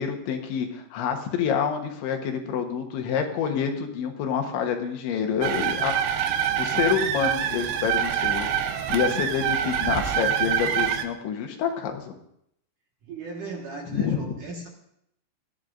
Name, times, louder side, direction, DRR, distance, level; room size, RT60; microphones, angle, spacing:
voice 1, 0.0-5.9 6.3-12.1 13.9-14.4, left 7 dB, 80° left, 4 dB, 3.6 m, -27 dB
sound 1, 5.4-11.0, right 9 dB, 75° right, 2.4 m, -25 dB
voice 2, 13.0-14.7, right 3 dB, 60° right, -1 dB, 2.5 m, -36 dB
20.5 x 14.0 x 2.6 m, 0.75 s
omnidirectional pair, 5.3 m